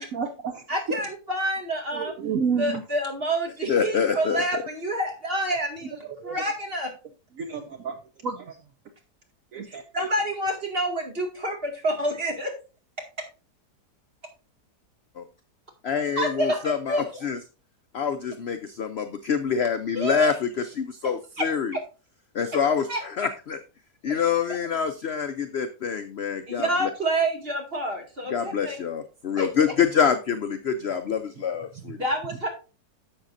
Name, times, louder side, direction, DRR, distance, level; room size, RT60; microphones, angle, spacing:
voice 1, 0.1-0.6 1.9-2.8 6.2-6.4 7.4-8.6 9.5-9.8 31.8-31.9, right 6 dB, 65° right, 6 dB, 1.0 m, -30 dB
voice 2, 0.7-2.1 2.6-6.9 9.7-12.5 16.2-17.2 19.9-20.4 21.0-21.8 22.5-22.6 22.9-23.0 24.1-24.2 26.5-28.8 29.4-29.7 31.9-32.5, right 1 dB, 35° right, 1 dB, 2.3 m, -28 dB
voice 3, 3.7-4.4 15.2-15.3 15.8-17.4 17.9-21.7 22.3-22.9 23.2-23.6 24.0-26.7 28.3-32.0, left 7 dB, 65° left, 9 dB, 0.6 m, -26 dB
11.5 x 7.1 x 2.6 m, 0.32 s
omnidirectional pair, 1.8 m